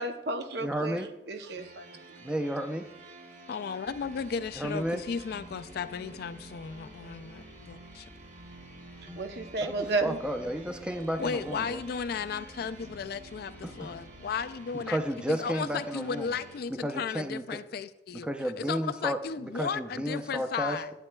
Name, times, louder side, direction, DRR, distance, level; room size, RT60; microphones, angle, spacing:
voice 1, 0.0-1.0 1.3-1.9 9.2-10.2, right 2 dB, 60° right, 7 dB, 0.7 m, -32 dB
voice 2, 0.6-1.1 2.2-2.9 4.5-5.1 9.6-11.8 13.6-13.9 14.7-16.4 16.7-17.6 18.1-20.8, equal, 5° right, 6 dB, 0.5 m, -33 dB
sound 1, 1.6-16.6, right 2 dB, 40° right, 1.1 m, -49 dB
voice 3, 3.5-8.1 11.2-15.0 15.3-18.3 18.6-20.9, left 6 dB, 55° left, 11 dB, 0.3 m, -35 dB
sound 2, 3.8-14.6, left 1 dB, 75° right, 2.4 m, -55 dB
11.5 x 9.0 x 2.2 m, 0.91 s
head